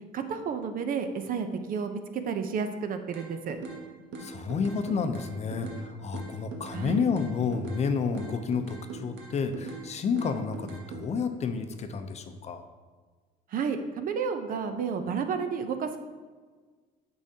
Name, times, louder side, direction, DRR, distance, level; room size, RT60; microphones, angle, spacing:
voice 1, 0.1-3.6 6.7-7.1 13.5-16.0, right 6 dB, 55° right, 7 dB, 0.7 m, -31 dB
sound 1, 3.1-3.8 4.1-5.8 6.1-7.8 8.1-9.9 10.2-11.0, right 4 dB, 85° right, 1.1 m, -41 dB
voice 2, 4.2-12.6, left 5 dB, 40° left, 7 dB, 0.6 m, -30 dB
8.6 x 6.3 x 2.8 m, 1.4 s
cardioid pair, 110°, 17 cm